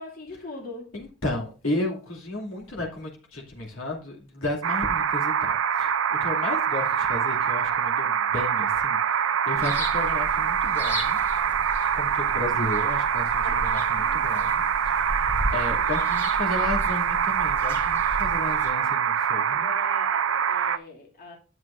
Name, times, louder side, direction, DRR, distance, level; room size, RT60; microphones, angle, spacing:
voice 1, 0.0-0.9 13.4-14.5 19.4-21.4, left 2 dB, 45° left, 2.6 m, -42 dB
voice 2, 0.9-11.2 11.9-19.7, left 2 dB, 65° left, 2.6 m, -33 dB
sound 1, 4.6-20.8, right 7 dB, 65° right, 0.5 m, -24 dB
sound 2, 9.5-18.7, equal, 10° left, 2.6 m, -35 dB
11.0 x 7.9 x 2.6 m
head